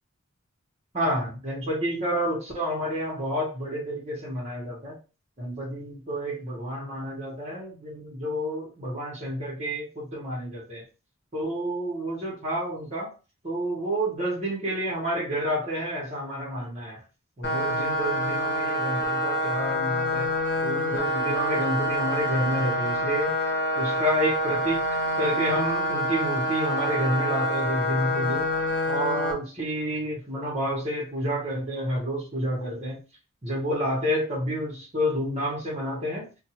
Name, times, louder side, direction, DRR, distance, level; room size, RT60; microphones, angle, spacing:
voice 1, 0.9-5.0 5.4-10.9 11.3-13.1 13.4-17.0 17.4-20.3 20.6-23.4 23.8-28.5 28.9-33.0 33.4-36.3, equal, 30° right, 1.0 m, -29 dB
sound 1, 17.4-29.3, left 1 dB, 55° left, 1.0 m, -27 dB
2.6 x 2.3 x 2.8 m
head